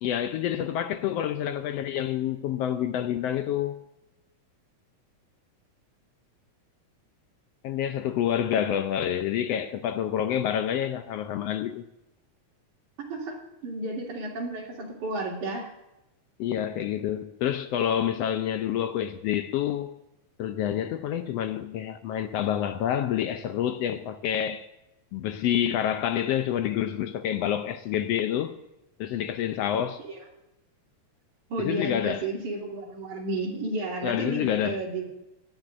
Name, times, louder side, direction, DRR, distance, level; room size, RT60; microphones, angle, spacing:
voice 1, 0.0-3.8 7.6-11.8 16.4-19.9 20.4-24.7 25.1-28.6 29.0-30.0 31.6-32.2 34.0-34.8, left 10 dB, 75° left, 1.5 m, -28 dB
voice 2, 13.0-13.4 13.6-15.7 30.0-30.2 31.5-35.2, right 2 dB, 85° right, 4.2 m, -32 dB
18.0 x 12.0 x 2.6 m
omnidirectional pair, 3.4 m